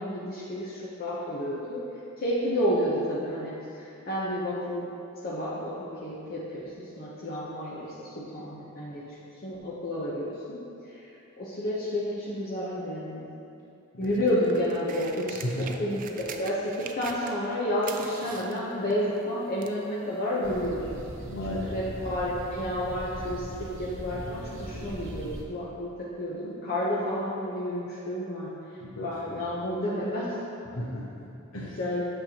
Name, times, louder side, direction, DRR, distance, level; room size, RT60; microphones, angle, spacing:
voice 1, 0.0-1.8 2.2-4.9 5.2-9.0 9.4-11.1 11.4-13.3 14.0-21.0 21.4-30.3 31.8-32.0, equal, 45° left, -7 dB, 0.9 m, -31 dB
sound 1, 14.0-17.5 17.8-19.8 20.6-20.7, right 6 dB, 40° right, 0.4 m, -43 dB
voice 2, 15.4-15.8 21.2-21.8 28.8-29.1 30.7-31.8, equal, 90° left, -5 dB, 0.8 m, -35 dB
sound 2, 20.4-25.4, equal, 65° right, 1.0 m, -40 dB
8.6 x 6.7 x 3.0 m, 2.7 s
head